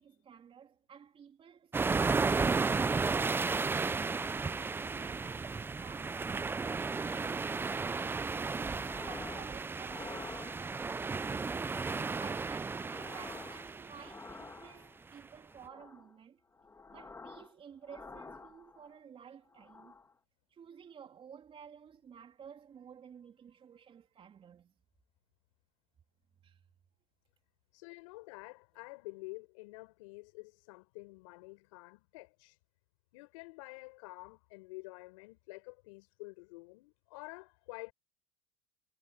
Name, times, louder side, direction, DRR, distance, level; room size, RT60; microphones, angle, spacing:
voice 1, 0.0-4.1 4.6-8.2 8.7-11.6 12.1-16.4 16.9-20.0 20.5-24.7 26.4-26.6, right 7 dB, 35° right, 3.5 m, -54 dB
sound 1, 1.7-14.3, right 4 dB, 15° right, 0.5 m, -34 dB
sound 2, 8.8-9.5 9.8-10.9 11.5-12.1 12.6-15.0 15.5-16.1 16.5-17.5 17.8-19.0 19.5-20.1, left 3 dB, 15° left, 2.8 m, -50 dB
voice 2, 27.7-32.6 33.1-37.9, left 25 dB, 75° left, 6.7 m, -49 dB
supercardioid pair, 105°, 17 cm